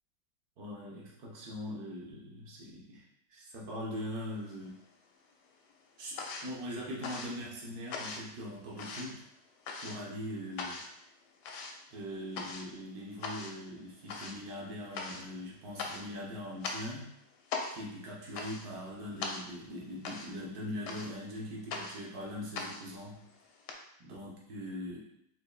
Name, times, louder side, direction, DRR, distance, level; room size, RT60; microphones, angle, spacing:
voice 1, 0.6-4.8 6.0-9.3 9.8-10.8 11.9-17.1 17.7-23.2 24.0-25.0, equal, 60° right, -4 dB, 1.4 m, -41 dB
sound 1, 4.4-5.2 5.5-23.7, left 4 dB, 75° left, 1.2 m, -42 dB
4.4 x 3.9 x 2.2 m, 0.75 s
omnidirectional pair, 1.9 m